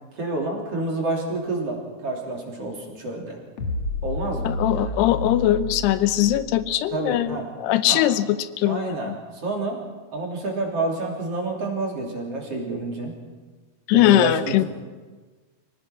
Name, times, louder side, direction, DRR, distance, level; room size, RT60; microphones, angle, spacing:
voice 1, 0.1-3.4 4.0-4.9 6.9-7.5 7.9-8.0 8.6-9.8 10.1-13.1 13.9-14.6, right 2 dB, 40° right, 0 dB, 3.9 m, -29 dB
sound 1, 3.6-7.0, left 2 dB, 60° left, 1.7 m, -31 dB
voice 2, 4.4-9.2 13.9-14.6, left 13 dB, 85° left, 13 dB, 2.9 m, -21 dB
25.5 x 18.0 x 6.0 m, 1.3 s
omnidirectional pair, 4.6 m